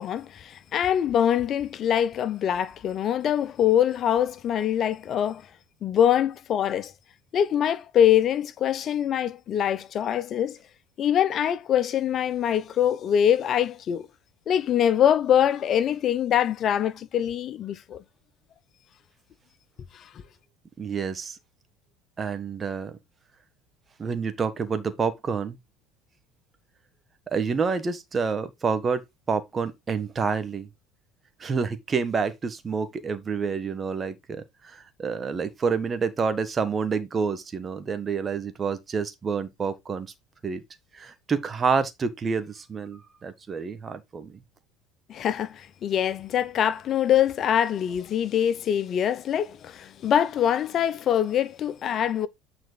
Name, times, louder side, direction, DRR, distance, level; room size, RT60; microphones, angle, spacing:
voice 1, 0.0-5.4 5.8-6.9 7.3-10.6 11.0-14.1 14.5-18.0 19.9-20.1 45.1-52.3, left 9 dB, 40° left, 0.7 m, -24 dB
voice 2, 20.8-21.4 22.2-23.0 24.0-25.6 27.3-30.7 31.4-40.1 40.4-40.6 40.9-44.4, right 5 dB, 30° right, 1.7 m, -28 dB
9.4 x 4.3 x 4.0 m
figure-of-eight pair, 65°, 0 cm